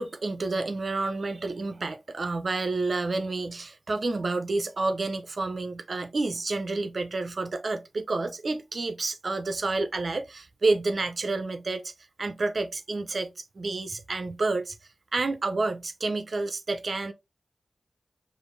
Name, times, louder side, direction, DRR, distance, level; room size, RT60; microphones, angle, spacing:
voice 1, 0.0-11.9 12.2-14.8 15.1-17.1, right 3 dB, 60° right, 0.5 m, -29 dB
5.0 x 2.5 x 3.1 m
cardioid pair, 65°, 0 cm